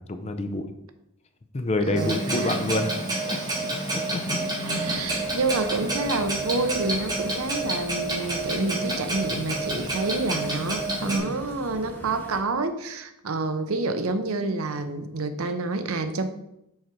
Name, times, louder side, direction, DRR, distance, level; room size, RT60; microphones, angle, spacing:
voice 1, 0.1-0.7 1.5-3.4 3.9-4.4, left 2 dB, 30° left, 8 dB, 0.5 m, -28 dB
voice 2, 1.9-2.5 4.6-16.3, right 3 dB, 75° right, 9 dB, 0.7 m, -28 dB
Clock, 2.0-11.2, right 2 dB, 20° right, 1.6 m, -29 dB
sound 1, 4.8-12.4, equal, 10° left, 0.8 m, -42 dB
6.4 x 4.8 x 4.4 m, 0.82 s
head